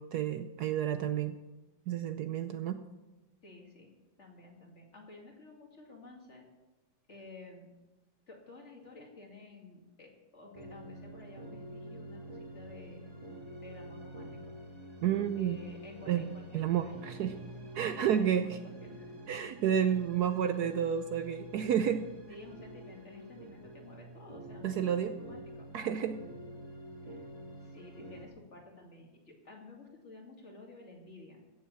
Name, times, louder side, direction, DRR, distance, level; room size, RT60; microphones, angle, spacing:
voice 1, 0.0-1.4 1.9-2.8 15.0-15.6 16.1-16.3 16.5-17.3 17.7-18.6 19.3-22.0 24.6-25.1 25.7-26.2, right 9 dB, 70° right, 9 dB, 1.1 m, -30 dB
voice 2, 3.4-3.9 4.2-6.5 7.1-7.7 8.3-13.0 13.6-14.4 15.4-17.0 17.9-19.1 22.3-25.7 27.0-27.3 27.6-31.4, left 2 dB, 40° left, 0 dB, 2.6 m, -52 dB
sound 1, 10.5-28.3, right 1 dB, 20° right, 2.1 m, -48 dB
16.0 x 7.4 x 6.9 m, 1.1 s
omnidirectional pair, 2.0 m